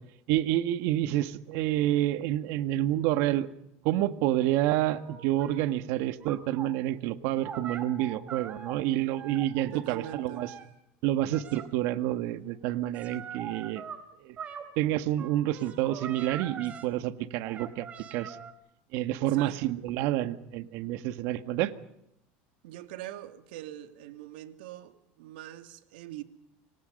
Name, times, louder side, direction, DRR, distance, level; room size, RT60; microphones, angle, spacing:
voice 1, 0.3-3.5 3.8-10.5 11.0-13.8 14.2-14.4 14.8-17.9 18.1-18.4 18.9-21.7, right 13 dB, 60° right, 1.8 m, -28 dB
sound 1, 4.9-5.6 6.2-6.7 7.4-8.8 9.1-10.7 11.3-11.7 12.9-14.0 14.4-14.7 15.2-16.9 17.5-18.5, right 7 dB, 25° right, 3.8 m, -42 dB
voice 2, 9.7-10.5 19.3-19.7 22.6-26.2, right 13 dB, 85° right, 2.7 m, -43 dB
29.5 x 25.0 x 5.4 m
cardioid pair, 150°, 5 cm